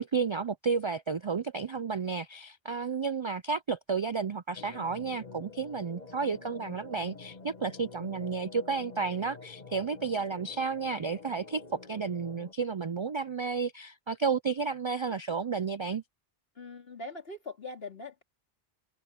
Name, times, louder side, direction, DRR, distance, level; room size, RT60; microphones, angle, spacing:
voice 1, 0.0-16.0, right 5 dB, 50° right, 0.3 m, -32 dB
sound 1, 4.5-12.5, left 3 dB, 45° left, 1.6 m, -48 dB
voice 2, 16.6-18.2, left 3 dB, 70° left, 3.4 m, -42 dB
omnidirectional pair, 1.0 m